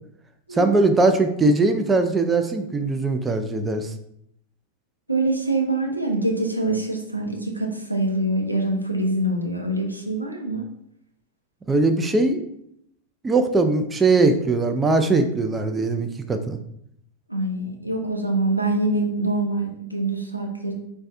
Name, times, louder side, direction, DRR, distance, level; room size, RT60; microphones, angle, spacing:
voice 1, 0.5-3.9 11.7-12.4 13.2-16.6, right 3 dB, 15° right, 7 dB, 0.3 m, -20 dB
voice 2, 5.1-10.7 17.3-20.7, right 2 dB, 90° right, 1 dB, 0.5 m, -25 dB
4.1 x 2.2 x 2.4 m, 0.75 s
figure-of-eight pair, 90°, 0 cm